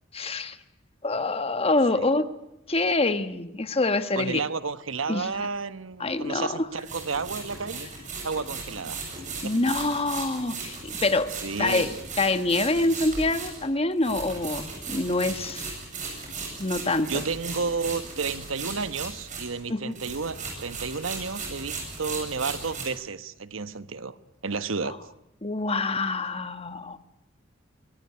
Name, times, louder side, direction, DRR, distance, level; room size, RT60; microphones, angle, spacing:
voice 1, 0.1-0.6 1.0-2.3 2.7-4.4 5.1-5.3 6.0-6.7 9.4-15.8 16.1-16.2 16.6-17.2 19.7-19.9 24.8-24.9 25.4-27.0, left 2 dB, 30° left, 10 dB, 1.3 m, -26 dB
voice 2, 4.2-7.9 8.2-9.0 9.4-9.5 11.4-11.9 17.1-24.2 24.4-25.0, right 4 dB, 90° right, 13 dB, 1.1 m, -31 dB
sound 1, 5.3-5.4 6.8-19.7 19.9-22.8, right 4 dB, 40° right, 8.0 m, -37 dB
24.0 x 19.0 x 9.7 m, 0.86 s
head